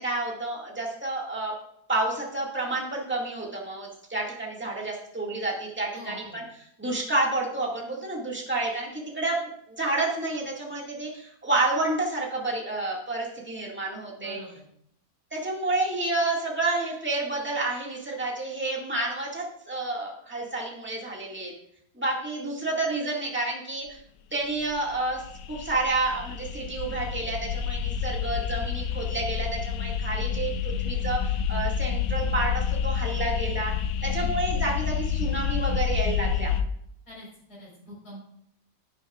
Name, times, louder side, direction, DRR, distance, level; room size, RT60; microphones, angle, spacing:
voice 1, 0.0-1.5 1.9-6.4 6.8-14.4 15.3-21.5 22.0-24.0 24.3-33.7 34.0-36.5, right 2 dB, 5° right, -2 dB, 1.8 m, -29 dB
voice 2, 5.9-6.4 14.2-14.6 34.0-34.3 37.1-38.3, left 1 dB, 60° left, -5 dB, 4.9 m, -44 dB
sound 1, 24.6-36.6, left 8 dB, 85° left, 1.3 m, -29 dB
11.0 x 11.0 x 2.4 m, 0.70 s
omnidirectional pair, 1.8 m